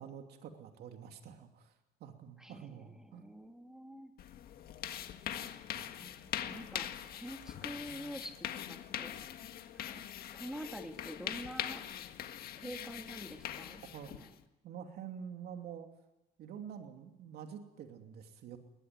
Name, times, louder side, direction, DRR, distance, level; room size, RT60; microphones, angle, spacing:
voice 1, 0.0-1.7 2.0-3.2 5.7-5.8 12.6-12.7 13.9-14.1 14.6-15.9 16.4-18.6, right 8 dB, 70° right, 5 dB, 2.8 m, -47 dB
voice 2, 2.4-4.1 6.0-6.9 7.1-9.1 9.9-10.0 10.3-11.9 12.6-13.8 14.1-14.3, equal, 5° right, 4 dB, 2.5 m, -47 dB
sound 1, 4.2-14.4, left 10 dB, 65° left, 1.7 m, -42 dB
21.0 x 21.0 x 9.5 m, 0.96 s
cardioid pair, 110°, 17 cm